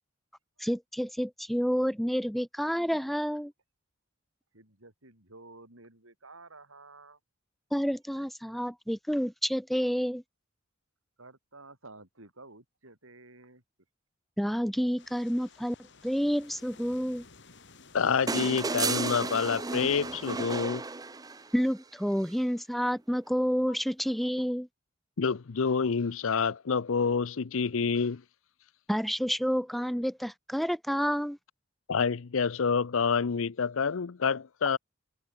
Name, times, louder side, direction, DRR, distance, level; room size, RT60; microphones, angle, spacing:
voice 1, 0.6-3.5 7.7-10.2 14.4-15.8 16.0-17.2 21.5-24.7 28.9-31.4, equal, ahead, 1.7 m, -29 dB
voice 2, 4.5-7.2 11.2-13.6, right 3 dB, 80° right, 7.7 m, -52 dB
sound 1, 15.0-20.6, left 4 dB, 60° left, 4.4 m, -55 dB
voice 3, 17.9-20.8 25.2-28.2 31.9-34.8, left 5 dB, 75° left, 0.6 m, -28 dB
sound 2, 18.3-21.6 23.1-23.2, right 4 dB, 20° right, 0.6 m, -33 dB
head